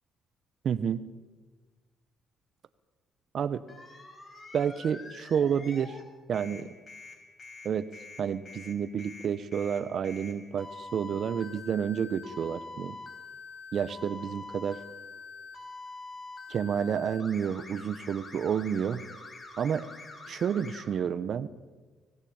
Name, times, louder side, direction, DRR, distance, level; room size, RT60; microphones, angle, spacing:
voice 1, 0.6-1.0 3.3-3.6 4.5-6.0 6.3-6.7 7.6-7.9 8.2-13.0 13.7-14.8 16.5-19.0 19.6-19.9 20.3-21.5, right 8 dB, 60° right, 15 dB, 1.3 m, -30 dB
sound 1, 3.7-6.0 6.3-20.9, left 3 dB, 40° left, 5.9 m, -45 dB
25.5 x 18.5 x 9.0 m, 1.4 s
cardioid pair, 90°, 0 cm